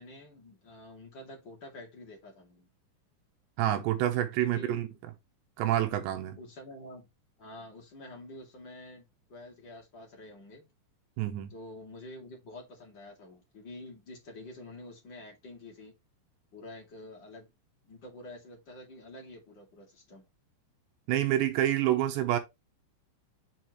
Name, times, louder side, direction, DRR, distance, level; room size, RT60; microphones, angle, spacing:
voice 1, 0.0-2.7 4.4-4.8 6.4-7.1 7.4-10.6 11.5-15.9 16.5-17.5 17.8-20.3, left 1 dB, 35° left, 1.9 m, -48 dB
voice 2, 3.6-4.9 5.6-6.4 11.2-11.5 21.1-22.4, right 13 dB, 75° right, 2.8 m, -27 dB
7.2 x 5.9 x 3.1 m
omnidirectional pair, 5.5 m